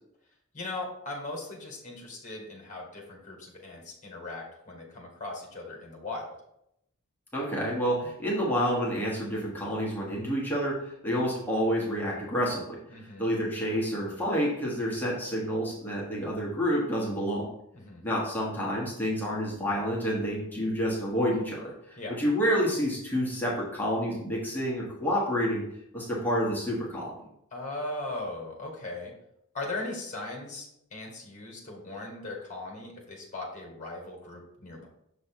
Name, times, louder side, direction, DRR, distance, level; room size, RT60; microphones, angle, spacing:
voice 1, 0.5-6.4 12.9-13.3 17.7-18.0 22.0-22.2 27.5-29.1 29.5-34.9, left 2 dB, 35° left, 0 dB, 1.6 m, -38 dB
voice 2, 7.3-12.8 13.2-17.5 18.0-25.6 25.9-27.1, equal, 10° left, -5 dB, 1.3 m, -29 dB
6.7 x 3.2 x 4.5 m, 0.78 s
head